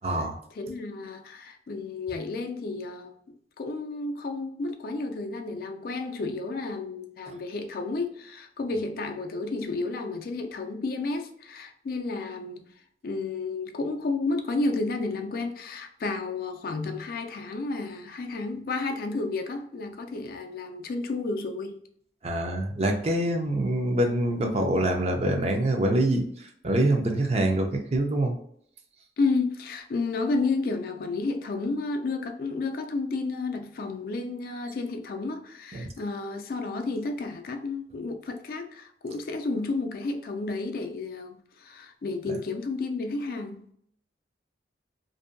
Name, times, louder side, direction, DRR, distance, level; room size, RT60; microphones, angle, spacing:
voice 1, 0.0-0.4 7.3-7.4 22.2-28.3 35.7-35.9 42.3-42.4, right 1 dB, 35° right, 0.4 m, -25 dB
voice 2, 0.5-3.1 3.6-12.7 13.0-21.8 29.2-43.7, left 3 dB, 55° left, 0.3 m, -31 dB
2.6 x 2.2 x 2.5 m
head